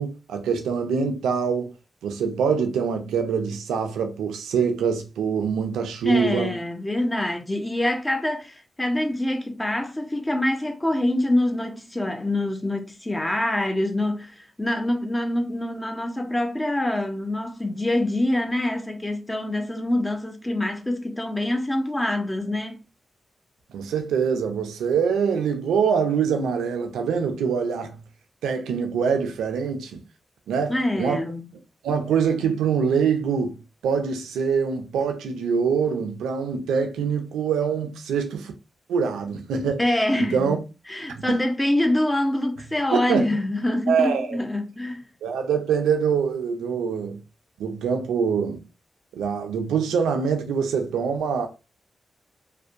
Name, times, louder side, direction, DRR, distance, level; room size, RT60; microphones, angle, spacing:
voice 1, 0.0-1.7 2.0-6.6 23.7-28.0 28.4-30.0 30.5-31.2 31.8-38.5 38.9-39.8 40.2-40.6 41.1-41.4 42.9-43.3 43.9-44.4 45.2-47.2 47.6-48.6 49.1-51.5, right 6 dB, 90° right, 0.4 m, -24 dB
voice 2, 6.0-22.8 30.7-31.4 39.8-40.6 40.9-45.1, left 1 dB, 20° left, 0.6 m, -25 dB
2.5 x 2.2 x 2.5 m
supercardioid pair, 40°, 0 cm